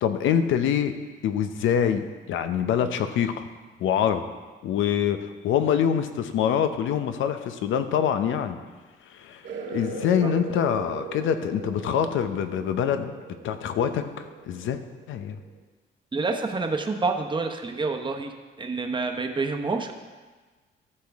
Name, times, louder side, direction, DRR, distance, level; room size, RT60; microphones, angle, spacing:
voice 1, 0.0-0.9 1.2-3.5 3.8-4.2 4.6-8.6 9.1-9.4 9.7-13.1 13.4-14.8 15.1-15.4, left 8 dB, 80° left, 9 dB, 0.8 m, -25 dB
sound 1, 9.4-15.6, right 4 dB, 70° right, 2.1 m, -39 dB
voice 2, 16.1-19.9, right 3 dB, 25° right, 3 dB, 1.0 m, -28 dB
14.0 x 6.7 x 3.6 m, 1.3 s
cardioid pair, 90°, 20 cm